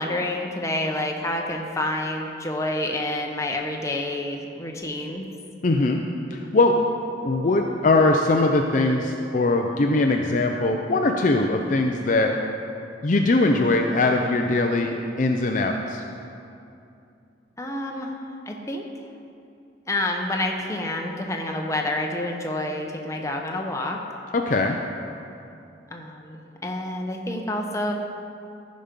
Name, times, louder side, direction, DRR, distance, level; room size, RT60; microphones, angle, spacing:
voice 1, 0.0-5.3 17.6-18.1 18.5-18.8 19.9-24.0 25.9-27.9, left 1 dB, 15° left, 1 dB, 0.8 m, -28 dB
voice 2, 5.6-6.0 6.3-6.8 7.2-12.3 13.0-16.0 24.3-24.8, left 2 dB, 45° left, 2 dB, 0.5 m, -21 dB
14.5 x 5.2 x 5.2 m, 2.6 s
head